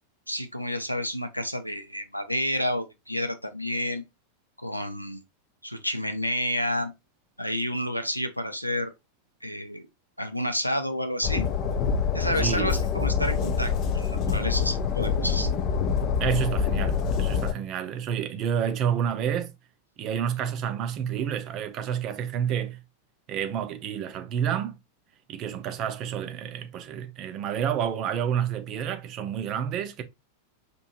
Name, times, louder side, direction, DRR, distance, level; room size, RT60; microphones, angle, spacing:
voice 1, 0.3-4.0 4.6-5.2 5.6-6.9 7.4-8.9 9.4-9.9 10.2-11.5 12.1-15.5, equal, 90° left, 0.5 m, -30 dB
Train, 11.2-17.5, left 6 dB, 35° left, 0.5 m, -26 dB
voice 2, 12.4-12.8 16.2-19.5 20.0-22.8 23.3-24.8 25.3-30.0, right 8 dB, 35° right, 0.6 m, -29 dB
4.4 x 2.7 x 2.5 m
figure-of-eight pair, 90°, 0 cm